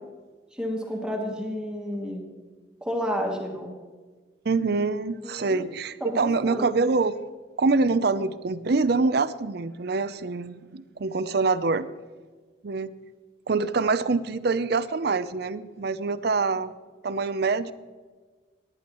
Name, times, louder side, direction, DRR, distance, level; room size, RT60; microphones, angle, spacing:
voice 1, 0.5-2.3 2.8-3.8 5.2-5.7 6.0-6.8, equal, 5° right, 0 dB, 1.3 m, -31 dB
voice 2, 4.4-7.2 7.6-11.9 12.6-12.9 13.5-16.7 17.0-17.7, right 4 dB, 55° right, 14 dB, 0.5 m, -25 dB
18.5 x 10.5 x 3.0 m, 1.4 s
head